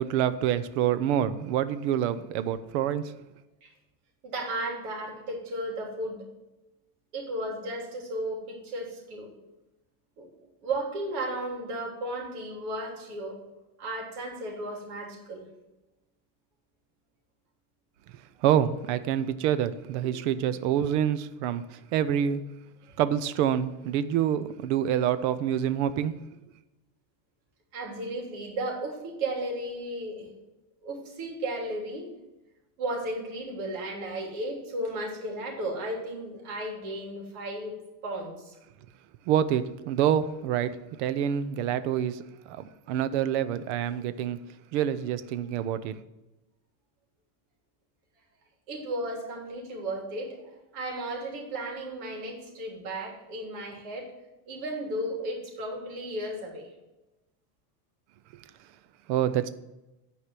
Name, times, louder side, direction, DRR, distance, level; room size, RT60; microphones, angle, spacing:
voice 1, 0.0-3.1 18.4-22.4 23.0-26.2 39.3-42.2 42.5-44.4 44.7-46.0 58.3-58.4 59.1-59.5, right 10 dB, 45° right, 0.6 m, -27 dB
voice 2, 4.2-6.2 7.1-9.3 10.2-10.3 10.6-13.4 13.8-15.5 20.0-20.1 27.7-30.3 30.8-32.1 32.8-37.7 38.0-38.5 48.7-50.4 50.7-54.1 54.5-56.7, right 1 dB, 65° right, 3.3 m, -34 dB
9.8 x 4.9 x 7.5 m
supercardioid pair, 175°, 48 cm